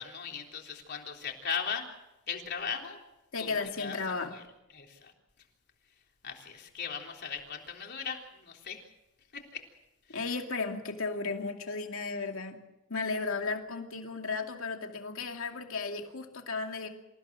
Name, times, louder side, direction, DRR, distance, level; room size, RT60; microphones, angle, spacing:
voice 1, 0.0-1.9 2.3-3.0 3.4-3.5 3.8-4.0 4.3-4.4 4.7-5.1 6.2-8.8 9.3-9.6 10.1-10.2, left 6 dB, 55° left, 2 dB, 3.7 m, -38 dB
voice 2, 3.3-4.4 10.1-12.6 12.9-16.9, left 4 dB, 75° left, 4 dB, 2.5 m, -34 dB
27.0 x 16.0 x 7.5 m, 0.96 s
head